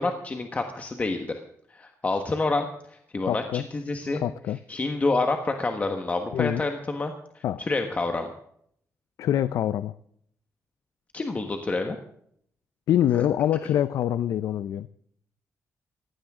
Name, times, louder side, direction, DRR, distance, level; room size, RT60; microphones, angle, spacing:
voice 1, 0.0-1.3 1.7-4.2 4.7-8.3 11.1-12.0, left 3 dB, 25° left, 5 dB, 1.4 m, -28 dB
voice 2, 3.3-3.6 4.2-4.6 6.3-6.6 7.4-7.6 9.2-9.9 12.9-14.9, left 11 dB, 75° left, 15 dB, 0.5 m, -25 dB
19.5 x 16.0 x 3.7 m, 0.67 s
cardioid pair, 135°, 6 cm